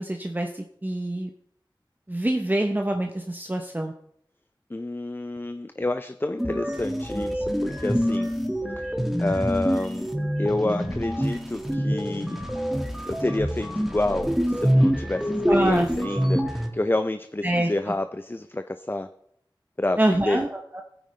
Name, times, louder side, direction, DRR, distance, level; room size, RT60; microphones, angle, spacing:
voice 1, 0.0-1.3 2.1-3.9 15.5-15.9 17.4-17.7 20.0-20.8, right 1 dB, 20° right, 3 dB, 0.8 m, -25 dB
voice 2, 4.7-8.3 8.8-10.1 10.4-12.4 13.1-19.1 19.8-20.4, left 2 dB, 25° left, 9 dB, 0.5 m, -29 dB
sound 1, 6.4-16.7, equal, 5° right, 1.6 m, -26 dB
15.0 x 9.1 x 3.2 m, 0.71 s
wide cardioid pair, 40°, 8 cm